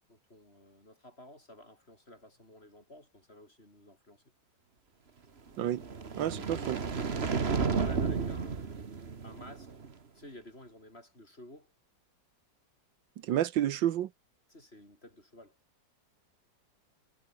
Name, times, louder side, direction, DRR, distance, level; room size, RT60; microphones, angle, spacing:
voice 1, 0.1-4.2 7.4-8.6 9.2-9.8 10.1-11.7 14.5-15.6, left 1 dB, 30° left, 8.0 m, -52 dB
sound 1, 5.6-9.9, right 5 dB, 35° right, 1.7 m, -33 dB
voice 2, 6.2-6.8 13.3-14.1, right 11 dB, 80° right, 1.6 m, -30 dB
omnidirectional pair, 2.0 m